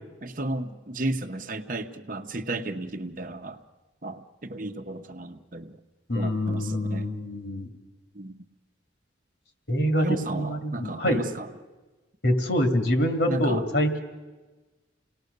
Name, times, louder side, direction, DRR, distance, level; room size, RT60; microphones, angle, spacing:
voice 1, 0.2-3.6 4.0-5.8 6.1-7.1 8.1-8.5 10.0-11.5 13.3-13.6, right 2 dB, 45° right, 6 dB, 1.0 m, -33 dB
voice 2, 6.1-7.7 9.7-11.2 12.2-14.0, equal, 65° left, 5 dB, 2.2 m, -25 dB
29.0 x 18.5 x 6.7 m, 1.2 s
head